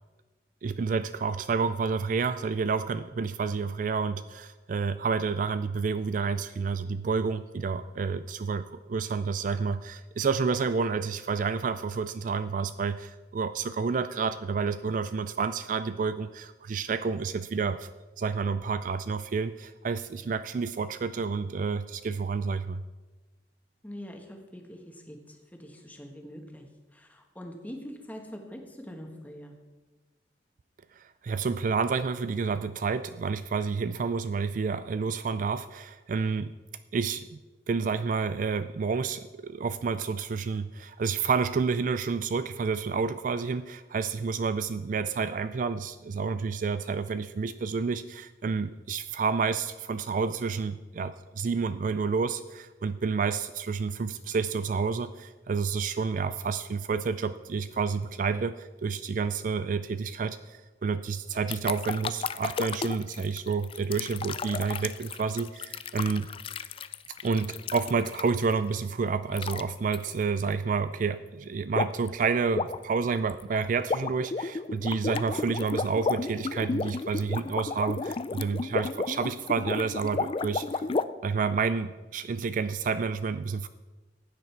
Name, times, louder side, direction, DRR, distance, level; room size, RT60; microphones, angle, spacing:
voice 1, 0.6-17.9 18.2-22.8 30.9-36.5 36.9-37.4 37.7-66.3 67.1-80.8 81.2-83.7, right 5 dB, 45° right, 13 dB, 0.3 m, -29 dB
voice 2, 23.8-26.7 26.9-29.5, equal, 10° left, 2 dB, 1.5 m, -44 dB
sound 1, 61.5-68.5 69.3-69.6 69.9-70.1 71.7-72.1 72.4-81.0, left 4 dB, 30° left, 0.3 m, -32 dB
15.5 x 9.2 x 4.6 m, 1.2 s
head